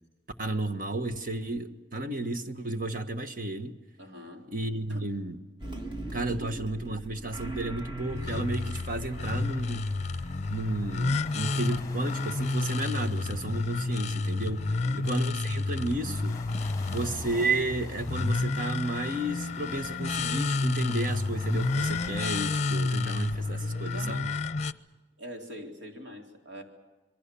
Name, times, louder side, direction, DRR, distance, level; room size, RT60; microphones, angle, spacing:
voice 1, 0.4-3.7 4.5-5.4 6.1-10.1 10.5-16.4 16.9-24.3, right 2 dB, 50° right, 1.5 m, -32 dB
voice 2, 4.0-4.5 4.9-5.1 5.7-5.9 6.4-6.5 14.7-15.0 23.6-24.3 25.2-26.6, equal, 90° right, 3.8 m, -44 dB
sound 1, 5.6-11.1, right 1 dB, 25° right, 2.4 m, -41 dB
sound 2, 8.0-24.7, left 3 dB, 40° left, 0.7 m, -30 dB
sound 3, 8.4-23.5, left 2 dB, 20° left, 1.5 m, -49 dB
27.5 x 22.5 x 7.0 m
head